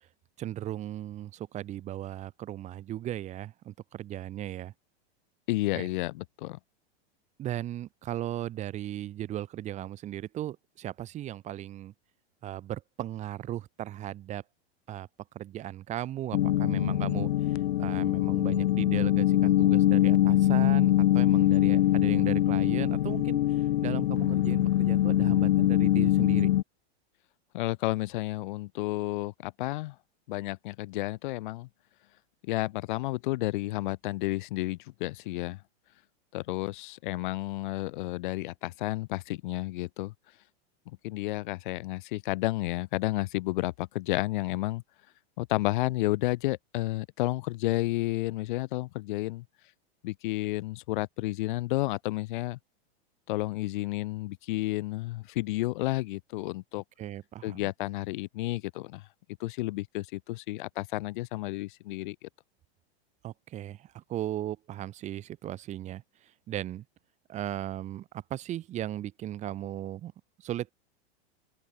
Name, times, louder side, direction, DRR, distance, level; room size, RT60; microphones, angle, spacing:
voice 1, 0.4-4.7 5.7-5.9 7.4-11.9 12.4-14.4 14.9-15.1 15.3-26.5 57.0-57.7 63.2-66.8 67.3-70.1 70.4-70.7, right 12 dB, 20° right, 2.3 m, -37 dB
voice 2, 5.5-6.6 27.5-29.9 30.3-31.7 32.4-35.6 36.3-40.1 40.9-44.8 45.4-49.4 50.0-52.6 53.3-56.8 57.4-59.1 59.4-62.3, left 19 dB, 50° left, 1.3 m, -31 dB
sound 1, 16.3-26.6, left 13 dB, 75° left, 2.3 m, -23 dB
open air
supercardioid pair, 165°, 32 cm